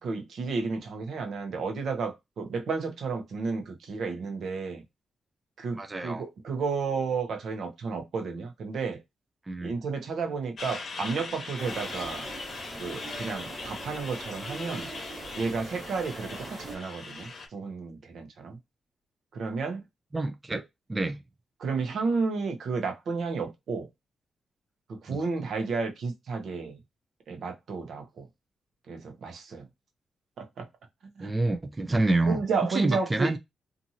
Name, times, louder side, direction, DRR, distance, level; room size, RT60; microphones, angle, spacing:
voice 1, 0.0-4.8 5.6-9.0 9.6-12.3 12.8-14.9 15.3-18.6 19.3-19.8 20.5-20.6 21.6-23.9 24.9-26.8 27.3-28.3 28.9-29.7 30.4-30.7 31.2-31.3 32.3-33.3, right 4 dB, 75° right, 0.8 m, -32 dB
voice 2, 5.8-6.2 9.5-9.7 20.1-20.6 20.9-21.2 25.1-25.2 31.2-32.4 32.7-33.4, right 2 dB, 20° right, 0.4 m, -27 dB
Truck, 10.6-17.5, left 4 dB, 60° left, 0.8 m, -40 dB
sound 1, 11.6-16.8, right 2 dB, 45° right, 1.2 m, -42 dB
2.7 x 2.5 x 2.7 m
cardioid pair, 105°, 0 cm